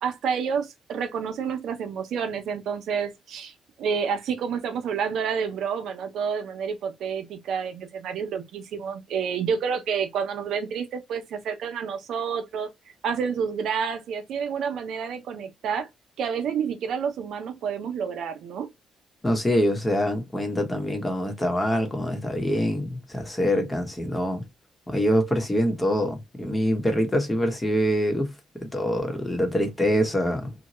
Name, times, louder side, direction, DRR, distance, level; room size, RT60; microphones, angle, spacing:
voice 1, 0.0-12.7 13.0-15.9 16.2-18.7, right 6 dB, 75° right, 0.6 m, -29 dB
voice 2, 19.2-24.4 24.9-28.3 28.6-30.5, equal, 15° left, 1.0 m, -25 dB
2.7 x 2.2 x 3.0 m
cardioid pair, 90°, 0 cm